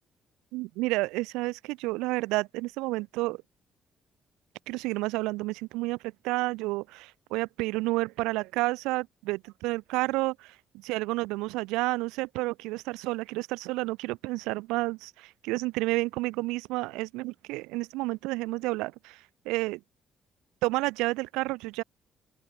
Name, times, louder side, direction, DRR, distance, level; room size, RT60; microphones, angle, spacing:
voice 1, 0.5-3.4 4.7-6.0 6.2-10.5 10.8-19.2 19.4-19.8 20.6-21.8, right 22 dB, 80° right, 1.4 m, -30 dB
open air
hypercardioid pair, 45°, 0 cm